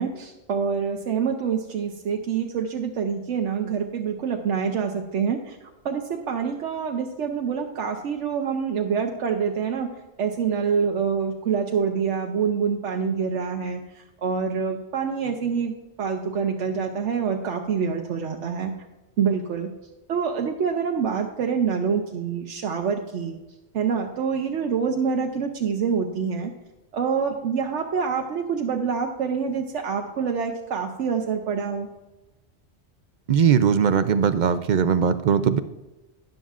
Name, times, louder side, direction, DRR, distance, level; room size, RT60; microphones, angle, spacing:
voice 1, 0.0-5.6 5.8-9.9 10.2-18.7 19.2-19.7 20.1-23.4 23.7-26.5 26.9-31.9, right 6 dB, 90° right, 2 dB, 1.1 m, -26 dB
voice 2, 33.3-35.6, right 7 dB, 60° right, 12 dB, 0.5 m, -20 dB
12.5 x 10.5 x 2.4 m, 1.0 s
omnidirectional pair, 1.2 m